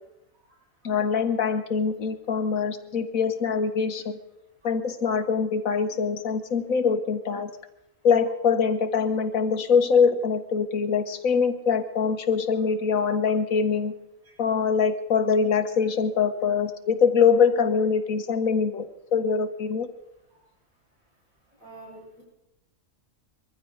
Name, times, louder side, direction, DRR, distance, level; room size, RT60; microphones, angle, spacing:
voice 1, 0.8-4.2 4.6-7.5 8.0-13.9 14.4-18.8 19.1-19.9, left 6 dB, 85° left, 9 dB, 1.7 m, -23 dB
voice 2, 21.6-22.2, right 2 dB, 80° right, -5 dB, 6.5 m, -45 dB
22.5 x 14.5 x 4.0 m, 0.89 s
omnidirectional pair, 1.4 m